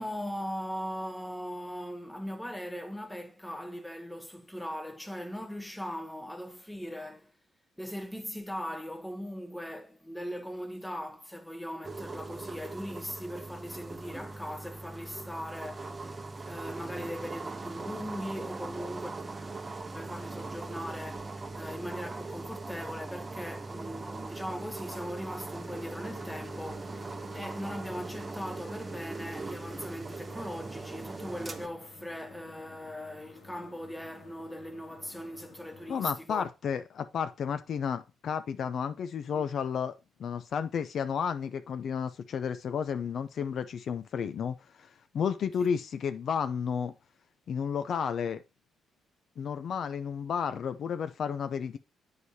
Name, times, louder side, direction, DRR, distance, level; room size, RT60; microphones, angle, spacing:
voice 1, 0.0-7.3 7.8-19.1 19.9-36.5 39.3-39.4 45.6-45.7, equal, 5° left, 0.9 m, -39 dB
sound 1, 11.8-31.7, right 3 dB, 25° right, 0.7 m, -40 dB
sound 2, 25.8-35.9, left 4 dB, 85° left, 2.1 m, -54 dB
voice 2, 35.9-39.9 40.2-46.9 47.5-48.4 49.4-51.8, left 7 dB, 60° left, 0.4 m, -32 dB
8.1 x 4.8 x 2.7 m
cardioid pair, 90°, 0 cm